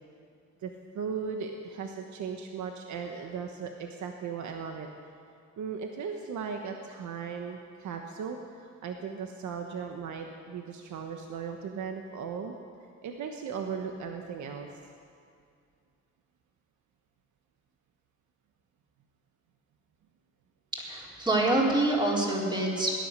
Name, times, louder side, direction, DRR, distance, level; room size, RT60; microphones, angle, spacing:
voice 1, 0.6-4.9 5.6-12.5 13.0-14.7, right 6 dB, 70° right, 4 dB, 1.3 m, -37 dB
voice 2, 20.9-22.9, right 2 dB, 15° right, -4 dB, 4.2 m, -26 dB
17.5 x 11.5 x 6.7 m, 2.3 s
cardioid pair, 90°, 30 cm